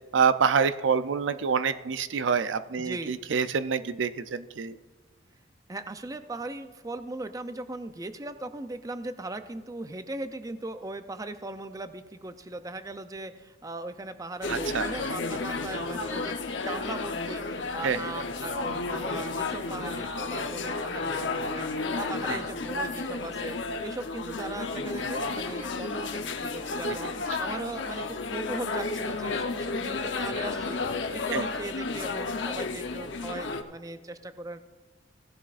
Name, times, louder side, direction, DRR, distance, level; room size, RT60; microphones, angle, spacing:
voice 1, 0.1-4.8 14.5-14.9 17.8-18.0 22.3-22.4 31.3-31.4, right 6 dB, 80° right, 12 dB, 0.5 m, -26 dB
voice 2, 2.8-3.2 5.7-34.7, right 2 dB, 20° right, 10 dB, 0.5 m, -39 dB
sound 1, 14.4-33.6, left 3 dB, 75° left, 0.8 m, -32 dB
16.5 x 11.0 x 2.5 m, 1.4 s
head